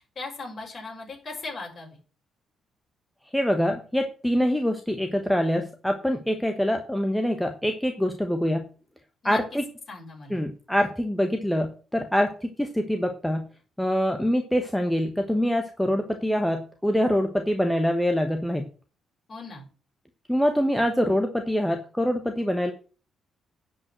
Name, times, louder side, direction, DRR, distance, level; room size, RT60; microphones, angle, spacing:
voice 1, 0.0-2.0 9.2-9.4 9.9-10.4 19.3-19.6, left 3 dB, 40° left, 0 dB, 6.4 m, -38 dB
voice 2, 3.3-8.7 9.2-9.6 10.3-13.5 13.8-18.6 20.3-22.7, equal, 5° left, 5 dB, 1.3 m, -25 dB
10.5 x 5.5 x 7.8 m, 0.38 s
cardioid pair, 90°, 0 cm